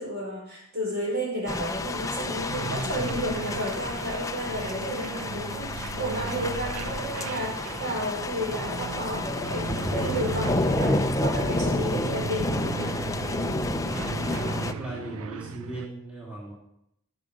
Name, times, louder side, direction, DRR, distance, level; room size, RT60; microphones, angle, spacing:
voice 1, 0.0-13.0, equal, 50° right, -2 dB, 5.0 m, -32 dB
sound 1, 1.5-14.7, left 2 dB, 15° left, 0.5 m, -30 dB
sound 2, 2.5-15.9, right 6 dB, 85° right, 0.4 m, -36 dB
voice 2, 13.8-16.5, right 1 dB, 5° right, -6 dB, 2.8 m, -38 dB
17.5 x 6.8 x 5.3 m, 0.76 s
head